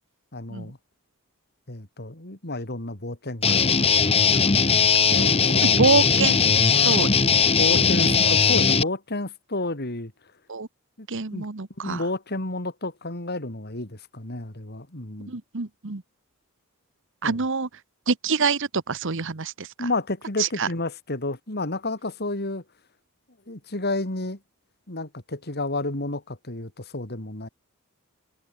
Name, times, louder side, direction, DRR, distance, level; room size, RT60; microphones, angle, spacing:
voice 1, 0.3-0.8 1.7-4.8 5.2-5.9 7.5-10.1 11.0-11.1 11.3-11.5 11.8-15.3 17.2-17.3 19.8-22.6 23.5-24.4 24.9-27.5, left 2 dB, 50° left, 3.4 m, -31 dB
Guitar, 3.4-8.8, left 6 dB, 25° left, 1.1 m, -19 dB
voice 2, 5.1-7.3 7.7-8.2 10.5-10.7 11.1-12.0 15.3-16.0 17.2-17.7 18.1-19.9 20.4-20.7, right 4 dB, 60° right, 1.2 m, -26 dB
head